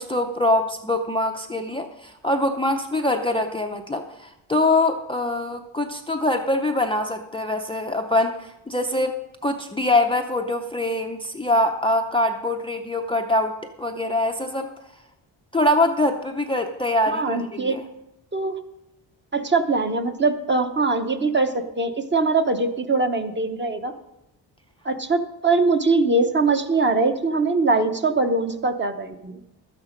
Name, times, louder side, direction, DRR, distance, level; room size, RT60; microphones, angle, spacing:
voice 1, 0.0-9.2 9.4-14.7 15.5-17.8, left 1 dB, 10° left, 5 dB, 0.5 m, -23 dB
voice 2, 17.1-17.8 18.3-18.6 19.3-23.9 24.8-29.4, right 3 dB, 25° right, 7 dB, 0.8 m, -22 dB
12.5 x 9.3 x 5.1 m, 0.91 s
wide cardioid pair, 150°, 44 cm